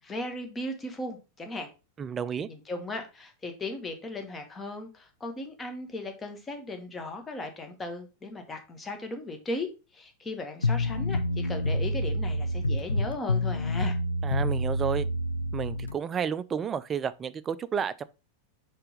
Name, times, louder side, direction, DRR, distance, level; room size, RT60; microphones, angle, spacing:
voice 1, 0.0-1.7 2.5-14.0, left 2 dB, 15° left, 1.3 m, -37 dB
voice 2, 2.0-2.5 14.2-15.1 15.5-18.0, right 7 dB, 25° right, 0.4 m, -31 dB
sound 1, 10.6-15.9, left 1 dB, 75° left, 0.4 m, -28 dB
4.4 x 4.2 x 5.1 m
figure-of-eight pair, 90°, 0 cm